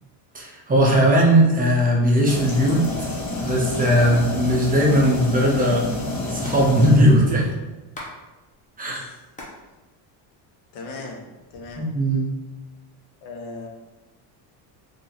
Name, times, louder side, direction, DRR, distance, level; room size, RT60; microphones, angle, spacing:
voice 1, 0.3-2.9 3.4-7.5 8.8-9.0 11.8-12.3, equal, 20° right, -2 dB, 0.5 m, -18 dB
sound 1, 2.3-7.5, left 3 dB, 50° left, 0.9 m, -29 dB
Hands, 5.0-5.2 5.4-5.5 5.7-8.2 8.5-9.6 10.0-10.8 11.3-11.9, left 1 dB, 15° left, 0.7 m, -41 dB
voice 2, 8.9-9.2 10.7-11.9 13.2-13.7, left 3 dB, 90° left, 1 dB, 0.9 m, -38 dB
2.9 x 2.6 x 3.9 m, 1.1 s
cardioid pair, 145°, 45 cm